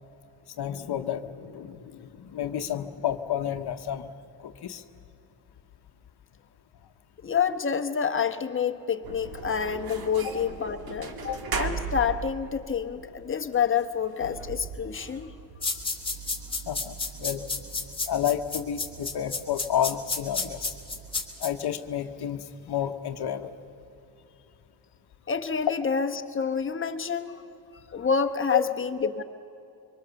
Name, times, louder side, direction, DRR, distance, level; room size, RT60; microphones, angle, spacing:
voice 1, 0.6-4.1 4.4-4.8 11.3-11.4 16.7-17.4 18.1-20.7 21.4-23.5 28.5-28.6, left 10 dB, 70° left, 8 dB, 1.0 m, -30 dB
voice 2, 7.2-15.3 25.3-27.5 27.9-29.2, left 6 dB, 30° left, 7 dB, 1.0 m, -28 dB
sound 1, 9.0-21.2, right 5 dB, 60° right, 1.8 m, -40 dB
sound 2, 15.6-21.5, left 4 dB, 15° left, 2.3 m, -30 dB
25.0 x 24.5 x 7.0 m, 2.9 s
wide cardioid pair, 160°, 40 cm